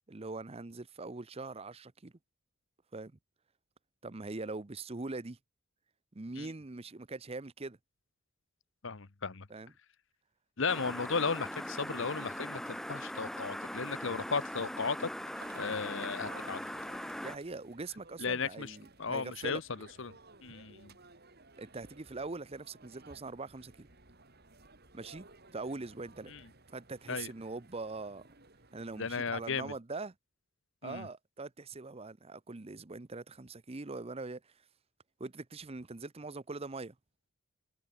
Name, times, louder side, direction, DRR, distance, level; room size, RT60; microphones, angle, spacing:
voice 1, 0.1-2.1 2.9-3.1 4.0-5.4 6.1-7.8 9.5-9.7 17.2-19.6 20.5-20.6 21.6-23.9 24.9-26.3 26.7-28.2 28.7-30.1 30.8-34.5 35.2-36.9, right 3 dB, 30° right, 0.7 m, -42 dB
voice 2, 8.8-9.5 10.6-15.1 15.6-16.7 18.2-20.1 20.4-20.9 26.3-26.4 27.1-27.3 29.0-29.7 30.8-31.1, left 5 dB, 60° left, 1.0 m, -35 dB
sound 1, 10.7-17.4, equal, ahead, 0.3 m, -40 dB
sound 2, 15.4-29.1, right 3 dB, 50° right, 5.6 m, -57 dB
head